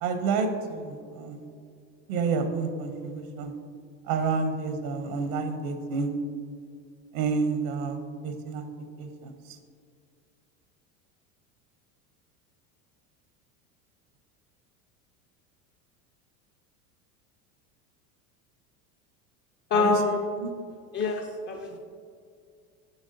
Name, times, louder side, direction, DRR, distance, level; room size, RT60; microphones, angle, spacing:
voice 1, 0.0-1.4 2.1-3.5 4.1-6.2 7.1-8.0 8.2-8.6 9.0-9.6 19.7-20.0 20.4-20.5, right 4 dB, 75° right, 7 dB, 0.8 m, -29 dB
voice 2, 19.7-20.2 20.9-21.8, left 4 dB, 25° left, 2 dB, 0.4 m, -26 dB
7.9 x 6.0 x 2.6 m, 2.3 s
hypercardioid pair, 95°, 44 cm